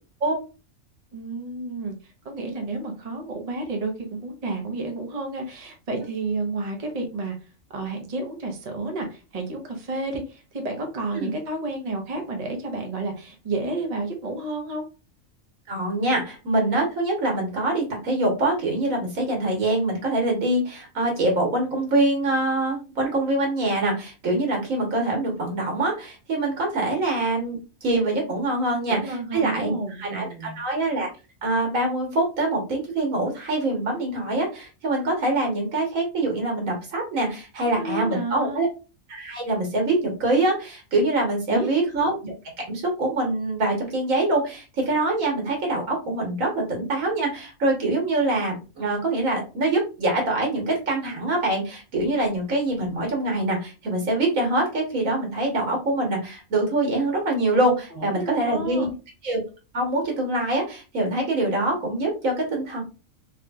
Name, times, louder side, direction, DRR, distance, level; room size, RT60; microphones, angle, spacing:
voice 1, 1.1-7.4 7.7-14.8 28.9-30.6 37.6-38.6 41.5-41.7 57.9-58.9, right 2 dB, 35° right, 3 dB, 0.7 m, -31 dB
voice 2, 15.7-30.3 30.5-31.1 31.4-38.7 39.1-42.3 42.7-58.9 59.2-59.4 59.7-62.8, right 2 dB, 80° right, 1 dB, 1.6 m, -24 dB
3.6 x 2.7 x 2.3 m, 0.32 s
omnidirectional pair, 1.4 m